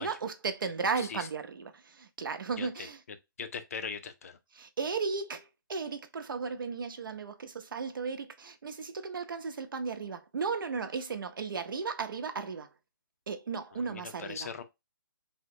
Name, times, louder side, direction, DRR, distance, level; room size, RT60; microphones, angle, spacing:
voice 1, 0.0-3.0 4.5-12.7 13.3-14.5, right 5 dB, 70° right, 0.6 m, -35 dB
voice 2, 3.4-4.4 13.8-14.6, left 6 dB, 40° left, 0.4 m, -39 dB
3.5 x 2.1 x 2.7 m
hypercardioid pair, 170°, 12 cm